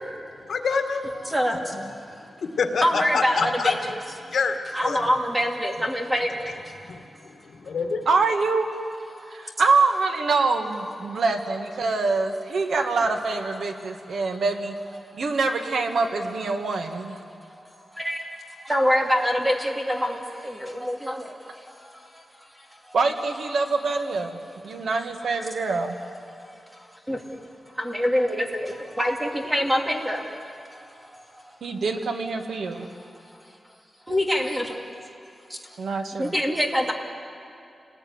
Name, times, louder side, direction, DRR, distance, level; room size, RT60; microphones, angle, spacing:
voice 1, 0.5-1.1 2.6-3.7 4.3-4.6 4.8-5.0 6.9-7.0 7.6-8.1, left 5 dB, 70° left, 5 dB, 2.0 m, -25 dB
voice 2, 1.2-1.8 2.8-3.8 4.7-7.0 9.2-9.4 17.3-17.6 17.9-18.3 18.6-23.0 25.7-25.9 26.3-27.2 27.7-31.8 32.8-33.1 34.1-35.1 35.5-35.6 36.2-36.9, equal, 10° right, 2 dB, 2.7 m, -26 dB
voice 3, 8.1-8.7 9.3-14.7 15.1-17.2 22.9-26.0 31.6-32.9 35.8-36.3, right 4 dB, 85° right, 5 dB, 2.2 m, -25 dB
29.0 x 20.0 x 9.8 m, 2.6 s
wide cardioid pair, 175°, 0 cm